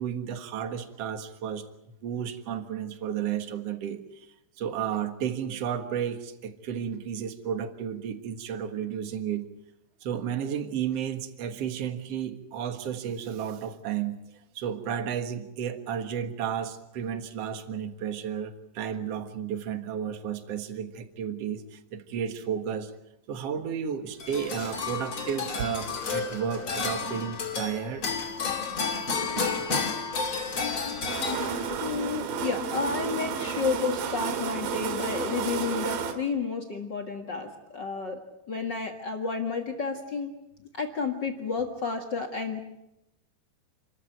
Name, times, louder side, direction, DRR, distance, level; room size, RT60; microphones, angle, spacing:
voice 1, 0.0-1.7 2.0-4.3 4.6-9.5 10.0-22.9 23.3-28.1 28.8-29.1, right 8 dB, 60° right, 8 dB, 1.7 m, -33 dB
sound 1, 24.2-31.9, left 5 dB, 35° left, 2.8 m, -31 dB
sound 2, 31.1-36.1, right 6 dB, 85° right, 4.2 m, -31 dB
voice 2, 31.8-38.2 38.5-40.3 40.7-42.6, left 4 dB, 70° left, 3 dB, 1.0 m, -31 dB
28.5 x 14.0 x 9.1 m, 0.86 s
omnidirectional pair, 5.0 m